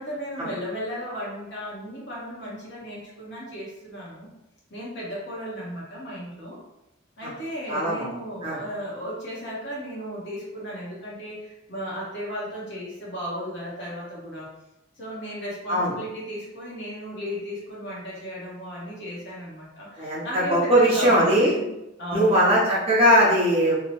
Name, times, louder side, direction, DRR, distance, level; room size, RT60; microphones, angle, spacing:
voice 1, 0.0-4.3 4.7-6.6 7.2-14.5 15.0-21.6 22.0-22.7, equal, 60° left, -5 dB, 0.9 m, -35 dB
voice 2, 7.7-8.1 8.4-8.6 15.7-15.9 20.0-21.5 22.1-23.8, equal, 30° right, -7 dB, 0.8 m, -20 dB
2.7 x 2.1 x 2.8 m, 0.92 s
head